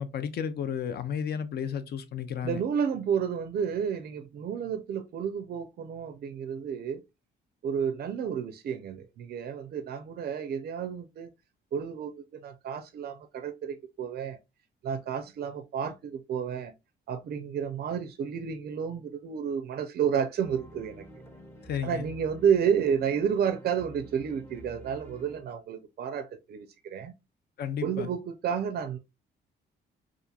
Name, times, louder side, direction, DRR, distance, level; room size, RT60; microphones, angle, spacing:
voice 1, 0.0-2.6 21.6-22.1 27.6-28.1, left 8 dB, 55° left, 0.5 m, -33 dB
voice 2, 2.4-7.0 7.6-11.3 11.7-14.4 14.8-16.7 17.1-21.1 21.8-27.1 27.8-29.0, right 7 dB, 50° right, 0.4 m, -31 dB
sound 1, 20.4-25.4, right 1 dB, 10° left, 0.6 m, -49 dB
2.8 x 2.5 x 2.2 m
cardioid pair, 90°, 20 cm